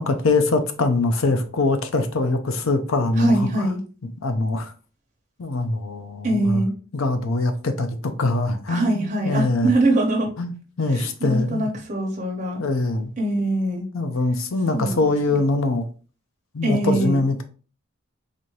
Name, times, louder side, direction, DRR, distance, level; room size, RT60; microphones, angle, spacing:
voice 1, 0.0-3.7 4.2-4.7 5.4-6.6 6.9-9.0 9.2-9.7 10.4-10.5 10.8-11.7 12.6-13.1 13.9-15.9 16.5-17.4, left 2 dB, 80° left, 0.6 m, -23 dB
voice 2, 3.2-3.8 6.2-6.7 8.7-10.3 10.9-12.6 13.2-13.9 14.7-15.0 16.6-17.2, right 2 dB, 35° right, 1.0 m, -23 dB
4.1 x 2.7 x 3.1 m
head